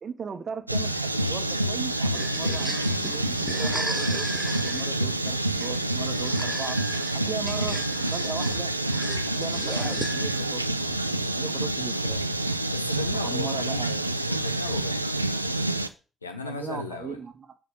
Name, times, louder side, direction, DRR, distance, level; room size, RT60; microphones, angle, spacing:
voice 1, 0.0-4.3 4.6-6.8 7.1-7.8 8.1-8.7 9.4-11.0 11.4-12.2 13.1-13.9 16.4-17.5, right 5 dB, 45° right, 10 dB, 0.9 m, -37 dB
sound 1, 0.7-15.9, right 1 dB, 90° right, 0.3 m, -28 dB
sound 2, 1.9-10.5, right 1 dB, 10° right, 0.4 m, -37 dB
voice 2, 12.7-15.7 16.2-17.2, left 3 dB, 85° left, 5 dB, 0.9 m, -37 dB
6.7 x 4.9 x 6.7 m, 0.35 s
figure-of-eight pair, 40°, 0 cm